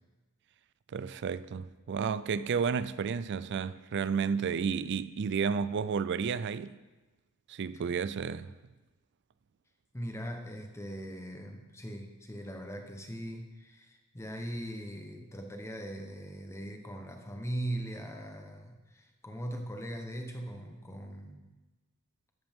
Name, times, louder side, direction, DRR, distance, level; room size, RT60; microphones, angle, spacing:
voice 1, 0.9-6.7 7.5-8.5, right 6 dB, 50° right, 0.4 m, -32 dB
voice 2, 9.9-21.4, right 1 dB, 15° left, 1.0 m, -40 dB
12.5 x 7.9 x 3.6 m
head